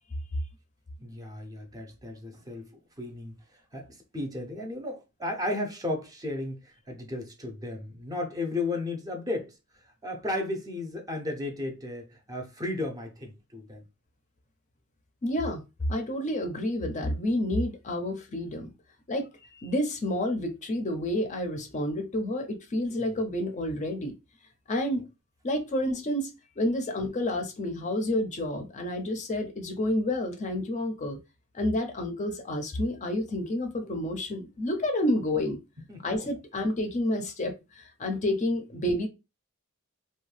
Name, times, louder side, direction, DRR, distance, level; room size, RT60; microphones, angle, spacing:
voice 1, 1.0-2.7 3.0-13.8 23.0-23.1 35.9-36.3, left 2 dB, 15° right, 0.5 m, -35 dB
voice 2, 15.2-15.6 15.9-18.7 19.1-24.1 24.7-25.0 25.4-31.2 31.5-35.6 36.0-39.1, left 1 dB, 35° left, 0.5 m, -29 dB
2.6 x 2.2 x 3.2 m
head